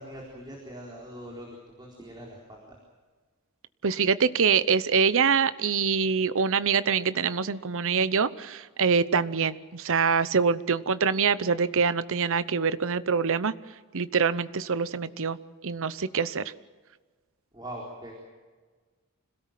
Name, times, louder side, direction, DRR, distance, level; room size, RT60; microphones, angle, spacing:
voice 1, 0.0-1.5 1.8-2.8 17.5-18.1, right 1 dB, 20° right, -2 dB, 4.1 m, -42 dB
voice 2, 3.8-13.5 13.9-15.4 15.6-16.5, right 5 dB, 65° right, 15 dB, 0.8 m, -25 dB
26.0 x 17.5 x 7.5 m, 1.4 s
head